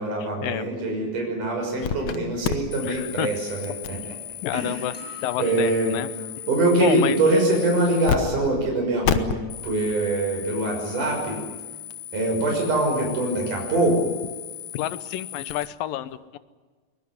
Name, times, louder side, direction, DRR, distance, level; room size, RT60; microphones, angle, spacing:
voice 1, 0.0-4.1 4.5-9.3 9.6-11.4 12.1-14.1, right 2 dB, 65° right, 1 dB, 7.7 m, -24 dB
sound 1, 1.8-2.2 2.4-8.2 8.4-8.5 9.0-15.7, left 9 dB, 60° left, 2.2 m, -33 dB
voice 2, 2.8-3.3 4.4-4.9 5.2-6.1 6.8-7.2 14.7-16.4, left 13 dB, 85° left, 15 dB, 2.6 m, -29 dB
sound 2, 4.9-6.3, left 3 dB, 10° left, 5.9 m, -45 dB
23.0 x 21.5 x 9.7 m, 1.4 s
omnidirectional pair, 4.0 m